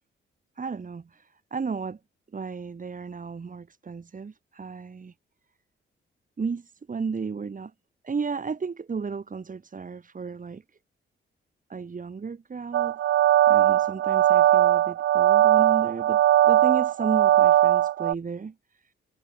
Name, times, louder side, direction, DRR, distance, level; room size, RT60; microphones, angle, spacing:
voice 1, 0.6-2.0 2.3-5.1 6.4-7.7 8.0-10.6 11.7-13.0 13.5-18.9, right 5 dB, 40° right, 2.3 m, -34 dB
sound 1, 12.7-18.1, right 12 dB, 70° right, 0.5 m, -20 dB
cardioid pair, 80°, 21 cm